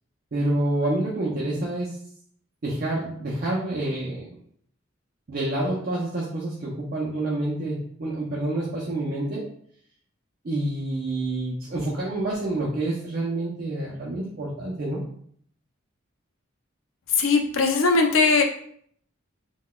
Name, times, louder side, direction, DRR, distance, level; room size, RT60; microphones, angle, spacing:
voice 1, 0.3-1.9 2.6-4.3 5.3-9.4 10.4-15.0, right 1 dB, 50° right, -5 dB, 0.5 m, -28 dB
voice 2, 17.1-18.4, left 4 dB, 80° left, 4 dB, 0.5 m, -20 dB
3.8 x 2.2 x 2.2 m, 0.62 s
head